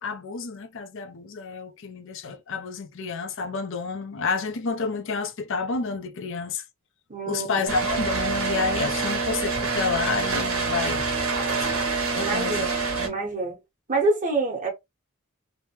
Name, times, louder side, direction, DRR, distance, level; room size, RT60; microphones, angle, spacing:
voice 1, 0.0-6.6 7.3-11.0 11.6-11.8 12.1-12.7 13.0-13.2, left 4 dB, 65° left, 0.5 m, -30 dB
voice 2, 7.1-7.5 12.1-13.5 13.9-14.7, right 3 dB, 40° right, 1.3 m, -26 dB
sound 1, 7.7-13.1, right 4 dB, 70° right, 1.2 m, -26 dB
3.1 x 2.2 x 2.9 m
head